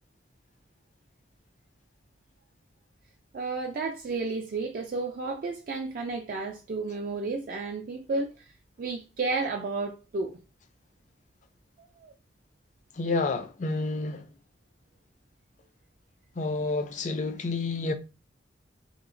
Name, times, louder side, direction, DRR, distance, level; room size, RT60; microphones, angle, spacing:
voice 1, 3.3-8.5 8.8-10.4 12.0-12.1, right 3 dB, 50° right, 0.3 m, -32 dB
voice 2, 13.0-14.3 16.4-17.9, left 3 dB, 40° left, 0.4 m, -29 dB
2.8 x 2.7 x 2.6 m
head